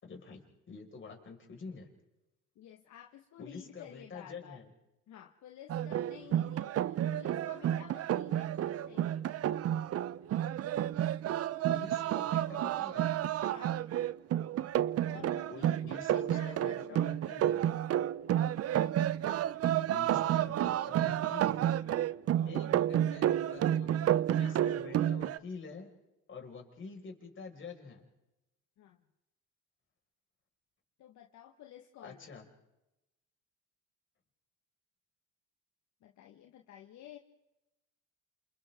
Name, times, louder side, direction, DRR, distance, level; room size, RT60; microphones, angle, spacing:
voice 1, 0.0-1.9 3.4-4.7 11.7-13.1 15.1-17.7 19.9-21.7 22.5-25.9 26.3-28.1 32.0-32.4, left 4 dB, 40° left, 2 dB, 5.5 m, -47 dB
voice 2, 2.5-4.6 5.1-9.2 13.4-13.8 15.1-17.1 18.3-18.5 22.4-23.2 24.4-24.6 28.8-29.0 31.0-32.3 36.0-37.2, left 11 dB, 65° left, 3 dB, 1.6 m, -53 dB
sound 1, 5.7-25.4, right 11 dB, 50° right, 0.7 m, -30 dB
29.0 x 28.5 x 3.7 m, 0.95 s
cardioid pair, 100°, 31 cm